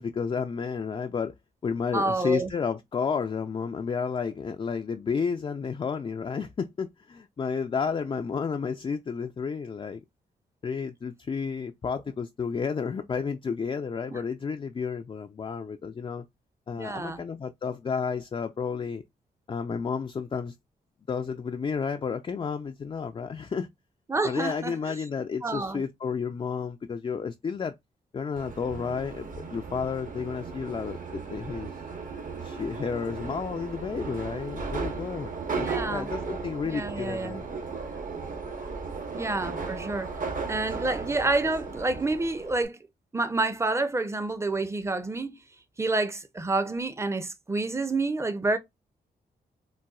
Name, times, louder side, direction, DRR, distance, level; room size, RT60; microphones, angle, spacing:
voice 1, 0.0-1.3 1.6-10.0 10.6-16.2 16.7-19.0 19.5-20.5 21.1-23.7 24.2-27.7 28.1-31.7 32.4-35.3 35.6-37.5, left 6 dB, 30° left, 0.4 m, -31 dB
voice 2, 1.9-2.5 14.1-14.2 16.8-17.2 24.1-24.7 25.4-25.8 35.6-36.1 36.6-37.4 39.1-40.1 40.5-42.8 43.1-45.4 45.8-48.6, right 2 dB, 15° right, 0.6 m, -28 dB
Subway metro underground, 28.4-42.6, right 4 dB, 50° right, 1.0 m, -36 dB
4.1 x 2.2 x 2.3 m
cardioid pair, 60°, 17 cm